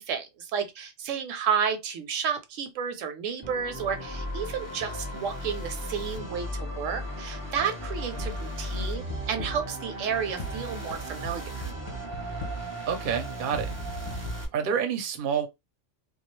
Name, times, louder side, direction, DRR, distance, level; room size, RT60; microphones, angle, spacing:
voice 1, 0.0-11.7, right 7 dB, 80° right, 0.9 m, -31 dB
sound 1, 3.4-14.4, equal, 15° right, 0.6 m, -36 dB
sound 2, 8.2-8.6 9.1-9.8 10.4-12.8 13.5-14.3, equal, 55° left, 0.4 m, -38 dB
voice 2, 12.8-13.7 14.5-15.5, right 7 dB, 55° right, 0.6 m, -28 dB
2.3 x 2.2 x 3.0 m
omnidirectional pair, 1.3 m